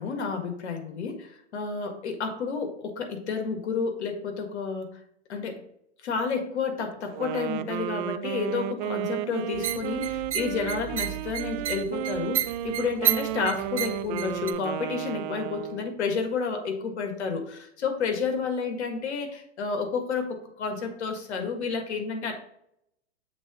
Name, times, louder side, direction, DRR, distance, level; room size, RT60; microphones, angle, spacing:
voice 1, 0.0-5.0 5.3-5.6 6.0-22.3, left 5 dB, 75° left, 6 dB, 1.8 m, -30 dB
Wind instrument woodwind instrument, 7.1-16.0, right 12 dB, 45° right, 0.4 m, -33 dB
sound 1, 9.5-14.5, right 11 dB, 90° right, 0.7 m, -32 dB
7.2 x 3.8 x 5.0 m, 0.74 s
hypercardioid pair, 125°, 34 cm